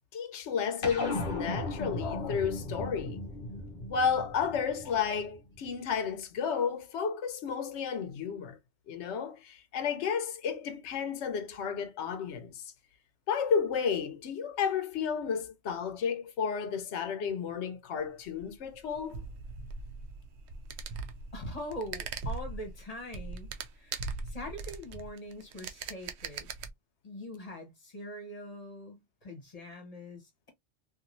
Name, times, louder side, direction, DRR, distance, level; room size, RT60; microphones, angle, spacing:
voice 1, 0.1-3.2 3.9-8.6 8.9-12.6 13.3-19.2, left 6 dB, 80° left, 1.0 m, -32 dB
sound 1, 0.8-5.6, left 2 dB, 50° left, 0.8 m, -37 dB
sound 2, 18.1-26.7, right 4 dB, 75° right, 0.8 m, -40 dB
voice 2, 21.3-26.5 27.0-30.5, left 1 dB, 35° left, 1.1 m, -43 dB
3.0 x 2.6 x 2.5 m
omnidirectional pair, 1.1 m